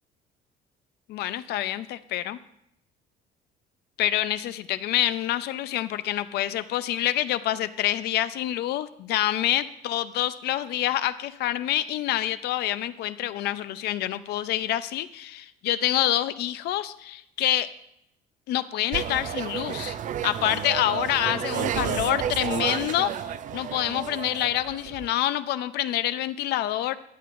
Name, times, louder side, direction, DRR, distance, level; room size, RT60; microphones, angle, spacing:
voice 1, 1.1-2.4 4.0-17.7 18.5-20.0 20.2-27.0, left 13 dB, 75° left, 14 dB, 0.5 m, -27 dB
sound 1, 18.9-25.1, right 9 dB, 50° right, 0.4 m, -31 dB
15.0 x 9.3 x 2.5 m, 0.76 s
cardioid pair, 110°, 17 cm